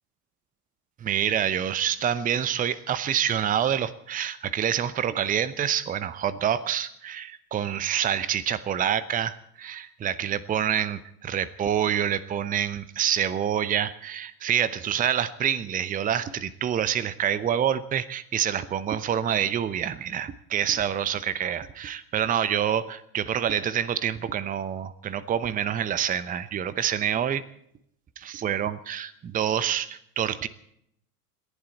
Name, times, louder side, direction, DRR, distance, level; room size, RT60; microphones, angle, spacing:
voice 1, 1.0-27.4 28.2-30.5, right 9 dB, 15° right, 16 dB, 0.8 m, -27 dB
28.0 x 11.5 x 4.3 m, 0.72 s
figure-of-eight pair, 80°, 47 cm